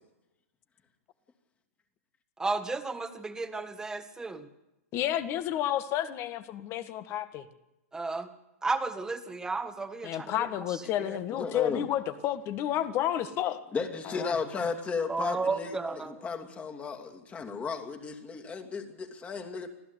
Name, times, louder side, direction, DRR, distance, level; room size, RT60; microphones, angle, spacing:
voice 1, 2.4-4.5 7.9-8.3 8.6-10.3 11.0-11.2 15.1-16.2, right 3 dB, 10° right, 8 dB, 1.7 m, -33 dB
voice 2, 4.9-7.4 10.0-13.6 14.0-14.3, left 12 dB, 35° left, 11 dB, 1.8 m, -31 dB
voice 3, 11.3-11.9 13.7-19.7, left 5 dB, 15° left, 5 dB, 2.7 m, -34 dB
25.0 x 16.0 x 8.3 m, 0.93 s
hypercardioid pair, 130°, 8 cm